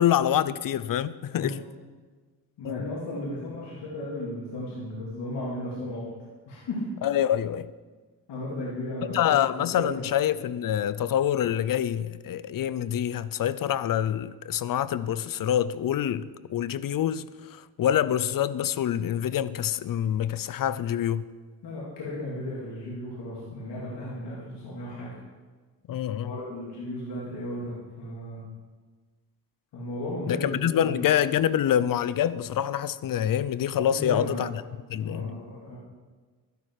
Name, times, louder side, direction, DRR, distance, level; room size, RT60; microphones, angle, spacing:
voice 1, 0.0-1.6 2.6-3.0 7.0-7.7 9.1-21.2 25.9-26.3 30.3-34.5 34.9-35.4, left 10 dB, 55° left, 0.6 m, -26 dB
voice 2, 2.6-6.0 6.5-6.8 8.3-9.9 21.6-25.1 26.2-28.4 29.7-30.9 33.9-34.4 35.0-35.8, left 1 dB, 75° left, 3.1 m, -35 dB
12.0 x 11.5 x 4.9 m
cardioid pair, 75°, 41 cm